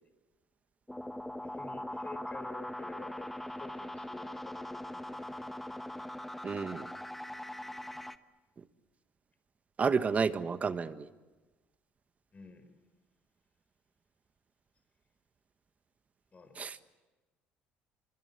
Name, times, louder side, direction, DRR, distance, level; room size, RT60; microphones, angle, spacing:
sound 1, 0.9-8.2, left 1 dB, 5° left, 1.1 m, -41 dB
voice 1, 1.4-5.6 12.3-12.7 16.3-16.6, left 3 dB, 30° left, 9 dB, 4.7 m, -50 dB
voice 2, 6.4-6.9 9.8-11.1 16.6-16.8, right 5 dB, 35° right, 12 dB, 1.4 m, -30 dB
25.0 x 24.0 x 8.4 m, 1.2 s
supercardioid pair, 75°, 4 cm